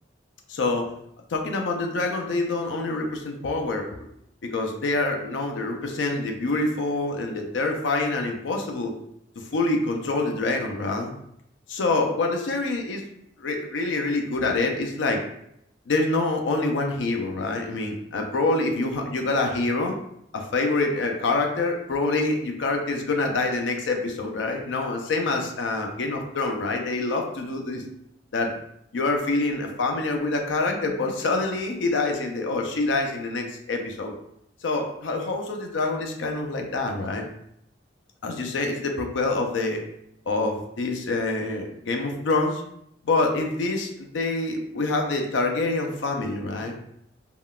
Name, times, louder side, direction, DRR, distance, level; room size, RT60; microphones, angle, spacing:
voice 1, 0.5-0.9 1.3-3.9 4.4-8.9 9.5-11.1 11.7-13.0 13.4-15.2 15.9-20.0 20.3-27.8 28.3-28.5 28.9-34.1 34.6-37.2 38.2-39.8 40.3-42.6 43.0-46.7, left 3 dB, 85° left, 3 dB, 0.5 m, -26 dB
3.5 x 2.2 x 2.3 m, 0.75 s
head